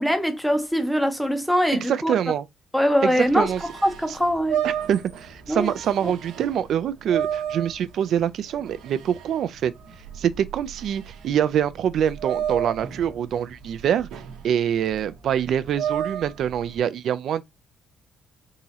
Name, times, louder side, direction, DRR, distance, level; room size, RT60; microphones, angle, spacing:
voice 1, 0.0-2.1 2.7-3.5 3.8-4.6 5.5-5.7 6.0-6.1, equal, ahead, 0.6 m, -22 dB
voice 2, 1.9-2.5 3.0-3.6 4.6-9.7 10.1-14.1 14.4-17.4, right 9 dB, 55° right, 0.4 m, -25 dB
sound 1, 3.2-16.8, right 9 dB, 75° right, 0.9 m, -33 dB
3.6 x 3.0 x 2.7 m
cardioid pair, 165°, 0 cm